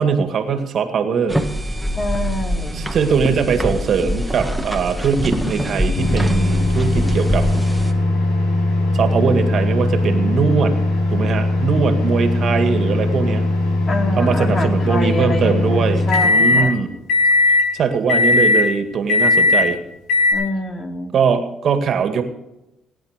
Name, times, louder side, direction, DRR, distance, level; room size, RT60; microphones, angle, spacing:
voice 1, 0.0-1.4 2.7-7.5 8.9-10.8 11.1-13.5 14.2-16.9 17.7-19.8 21.1-22.2, right 6 dB, 60° right, 8 dB, 1.9 m, -20 dB
sound 1, 1.3-7.9, equal, ahead, 1.8 m, -24 dB
voice 2, 2.0-2.9 13.9-16.8 20.3-21.1, left 2 dB, 40° left, 4 dB, 2.8 m, -26 dB
sound 2, 6.0-16.7 17.1-17.7 18.1-18.7 19.1-19.7 20.1-20.3, left 2 dB, 90° left, 5.3 m, -18 dB
19.0 x 10.0 x 5.1 m, 0.93 s
cardioid pair, 85°, 0 cm